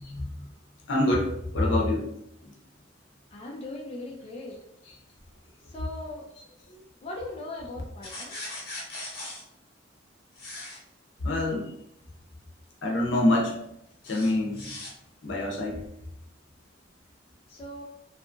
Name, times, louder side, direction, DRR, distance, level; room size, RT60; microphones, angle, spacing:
voice 1, 0.0-0.5 0.9-2.1 2.4-2.5 6.7-6.8 11.2-11.7 12.8-13.6 14.1-14.7 15.2-15.8, left 1 dB, 75° left, -1 dB, 0.6 m, -26 dB
voice 2, 3.3-4.6 5.7-6.3 7.0-8.4 17.5-17.8, left 2 dB, 30° left, -3 dB, 0.4 m, -39 dB
sound 1, 8.0-9.4 10.4-10.8 14.0-14.9, left 2 dB, 50° left, 1.0 m, -39 dB
2.7 x 2.3 x 2.5 m, 0.79 s
head